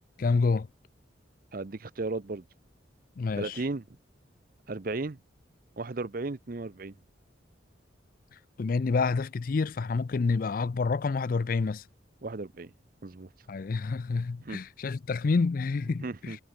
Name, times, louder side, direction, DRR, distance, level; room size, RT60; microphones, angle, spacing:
voice 1, 0.2-0.7 3.2-3.6 8.6-11.8 13.5-16.4, left 4 dB, 45° left, 0.4 m, -28 dB
voice 2, 1.5-2.5 3.3-3.8 4.7-5.2 5.8-6.9 12.2-12.7 13.0-13.3 14.4-14.6 16.0-16.4, right 3 dB, 45° right, 0.7 m, -35 dB
head